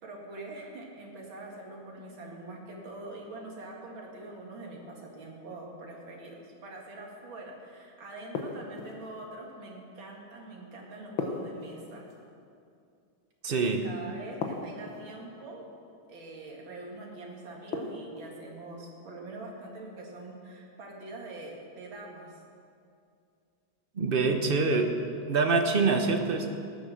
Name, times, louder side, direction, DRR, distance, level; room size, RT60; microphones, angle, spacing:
voice 1, 0.0-12.1 13.5-15.7 16.1-22.4, right 2 dB, 70° right, -1 dB, 2.8 m, -44 dB
sound 1, 8.3-9.1 11.2-12.2 14.4-15.2 17.7-18.4, left 4 dB, 75° left, 1.9 m, -36 dB
voice 2, 13.4-13.8 23.9-25.0 25.3-26.5, right 4 dB, 40° right, 4 dB, 0.8 m, -25 dB
18.5 x 8.0 x 6.5 m, 2.4 s
omnidirectional pair, 2.2 m